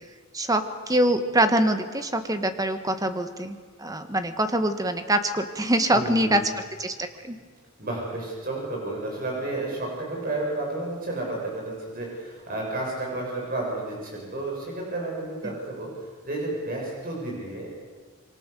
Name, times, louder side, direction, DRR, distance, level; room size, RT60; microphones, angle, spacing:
voice 1, 0.3-6.4 6.8-7.4 15.4-15.5, right 1 dB, 15° right, 8 dB, 1.5 m, -24 dB
voice 2, 5.9-6.4 7.8-17.7, right 2 dB, 40° right, -2 dB, 7.1 m, -31 dB
26.5 x 23.5 x 6.9 m, 1.5 s
head